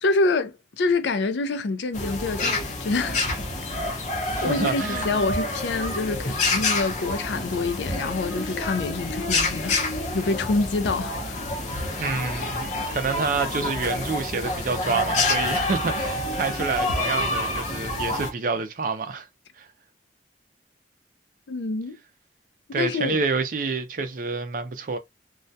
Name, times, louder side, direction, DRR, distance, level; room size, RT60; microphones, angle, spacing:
voice 1, 0.0-3.3 4.4-11.4 21.5-22.0 22.7-23.2, left 3 dB, 85° left, 0.4 m, -26 dB
sound 1, 1.9-18.3, left 2 dB, 40° left, 0.6 m, -28 dB
voice 2, 4.3-5.2 12.0-19.3 19.6-19.7 22.7-25.0, right 4 dB, 50° right, 0.5 m, -28 dB
2.3 x 2.1 x 2.6 m
head